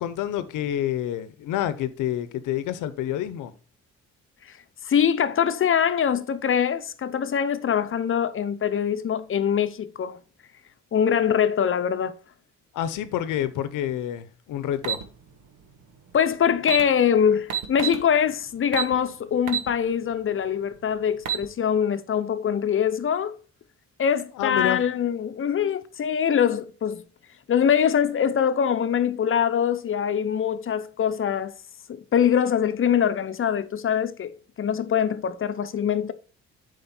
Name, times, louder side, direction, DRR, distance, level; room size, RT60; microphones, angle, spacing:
voice 1, 0.0-3.5 12.7-15.0 24.4-24.8, left 11 dB, 85° left, 0.9 m, -28 dB
voice 2, 4.8-10.2 10.9-12.2 16.1-23.4 24.0-27.0 27.5-31.5 31.9-36.1, left 8 dB, 45° left, 0.8 m, -23 dB
sound 1, 14.8-15.0 16.2-16.3 16.6-16.8 17.5-18.0 18.7-18.9 19.5-19.7 20.1-20.2 21.0-21.5, right 9 dB, 80° right, 1.4 m, -27 dB
7.8 x 5.0 x 4.3 m
cardioid pair, 90°, 30 cm